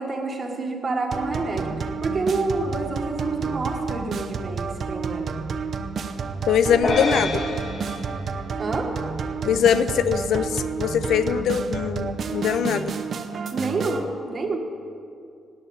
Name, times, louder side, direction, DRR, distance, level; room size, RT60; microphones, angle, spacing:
voice 1, 0.0-1.7 2.0-5.4 8.6-8.9 13.5-14.6, right 3 dB, 25° right, 2 dB, 1.7 m, -28 dB
sound 1, 1.1-14.0, right 5 dB, 40° right, 0.8 m, -30 dB
voice 2, 6.5-7.4 9.4-12.9, left 8 dB, 65° left, 12 dB, 0.7 m, -22 dB
sound 2, 6.8-9.3, left 2 dB, 50° left, 1.6 m, -29 dB
18.0 x 9.4 x 7.2 m, 2.4 s
cardioid pair, 165°, 0 cm